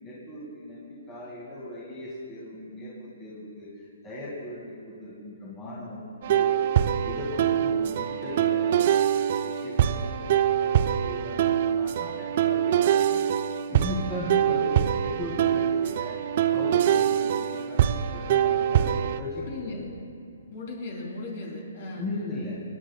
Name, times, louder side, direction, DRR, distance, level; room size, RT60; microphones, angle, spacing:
voice 1, 0.0-3.7 4.0-6.6 7.0-9.1 9.4-10.7 11.0-13.2 13.7-16.1 16.5-19.8 22.0-22.6, left 1 dB, 20° left, -8 dB, 2.2 m, -37 dB
sound 1, 6.2-19.2, right 10 dB, 45° right, 0.4 m, -24 dB
voice 2, 19.3-19.9 20.5-22.1, left 2 dB, 55° left, -1 dB, 3.3 m, -37 dB
25.5 x 10.0 x 2.3 m, 2.4 s
hypercardioid pair, 155°, 0 cm